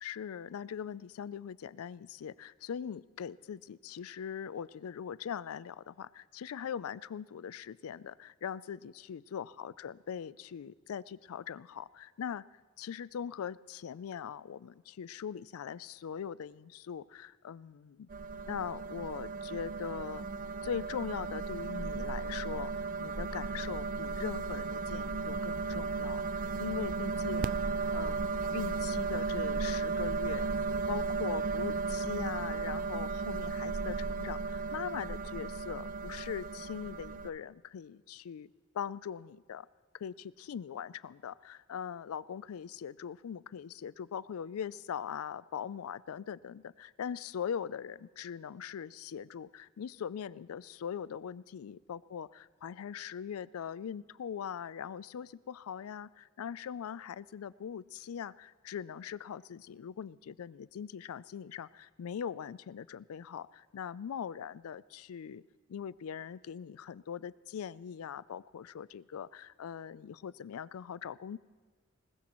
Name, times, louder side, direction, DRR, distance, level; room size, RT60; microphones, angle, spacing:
voice 1, 0.0-12.4 12.8-18.1 18.4-20.2 20.6-22.7 23.0-27.6 27.9-30.5 30.9-38.5 38.7-39.7 39.9-65.4 65.7-71.4, left 8 dB, 90° left, 20 dB, 0.4 m, -41 dB
sound 1, 18.1-37.3, right 4 dB, 40° right, 0.4 m, -35 dB
20.5 x 20.0 x 3.0 m, 1.4 s
head